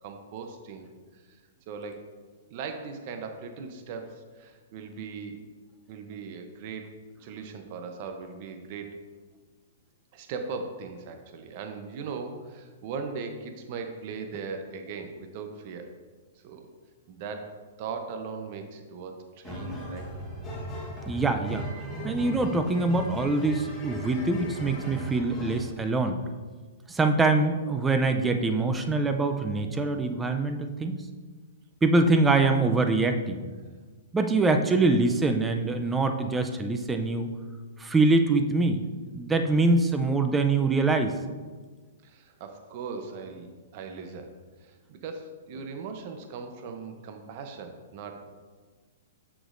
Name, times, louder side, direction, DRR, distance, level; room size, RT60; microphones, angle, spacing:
voice 1, 0.0-0.9 1.1-1.4 1.7-2.1 2.5-5.4 5.9-6.9 7.2-9.0 10.1-15.9 16.4-16.7 17.1-20.1 42.0-44.3 44.6-48.3, right 5 dB, 45° right, 6 dB, 0.7 m, -39 dB
sound 1, 19.4-25.7, equal, 10° left, 1.3 m, -37 dB
voice 2, 21.1-21.7 22.0-26.2 26.9-31.0 31.8-33.5 34.1-37.3 37.8-38.8 39.1-41.1, right 3 dB, 10° right, 6 dB, 0.5 m, -24 dB
7.8 x 6.1 x 2.6 m, 1.4 s
hypercardioid pair, 135°, 0 cm